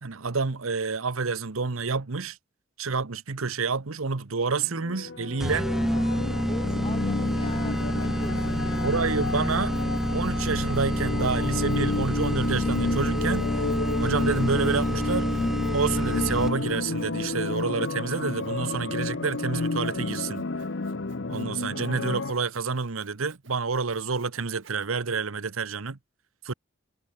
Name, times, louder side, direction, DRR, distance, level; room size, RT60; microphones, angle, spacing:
voice 1, 0.0-2.4 2.8-5.7 8.8-9.7 10.1-13.7 14.0-20.5 21.3-26.0 26.4-26.5, right 4 dB, 90° right, 1.0 m, -28 dB
sound 1, 4.6-22.3, left 3 dB, 60° left, 0.8 m, -31 dB
sound 2, 5.4-16.8, equal, ahead, 0.3 m, -28 dB
voice 2, 6.4-9.1, left 2 dB, 25° left, 1.8 m, -41 dB
Sawing, 6.8-24.9, right 6 dB, 65° right, 4.7 m, -61 dB
head